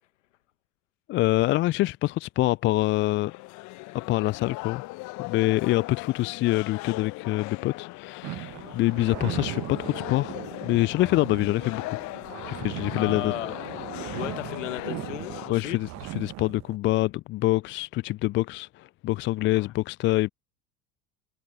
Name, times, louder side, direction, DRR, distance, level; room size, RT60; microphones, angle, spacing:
voice 1, 1.1-3.3 4.1-4.8 5.2-11.8 12.5-13.3 15.5-20.3, left 17 dB, 30° left, 0.4 m, -25 dB
sound 1, 2.9-15.5, left 24 dB, 45° left, 1.0 m, -39 dB
sound 2, 8.2-16.8, right 18 dB, 40° right, 1.2 m, -38 dB
voice 2, 12.9-13.7 14.1-15.8 19.5-19.7, left 15 dB, 70° left, 1.7 m, -35 dB
figure-of-eight pair, 70°, 39 cm